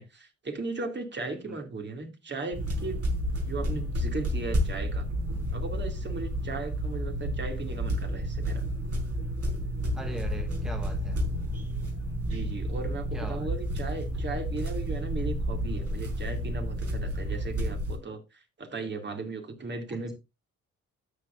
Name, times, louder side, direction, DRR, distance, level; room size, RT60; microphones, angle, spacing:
voice 1, 0.0-3.0 3.4-5.1 5.5-8.6 12.3-20.1, right 3 dB, 35° right, 2.7 m, -37 dB
voice 2, 1.2-1.6 9.9-11.2 13.1-13.5 19.9-20.1, equal, ahead, 1.2 m, -41 dB
sound 1, 2.5-18.0, equal, 55° right, 4.4 m, -31 dB
12.5 x 8.0 x 2.6 m
cardioid pair, 90°, 30 cm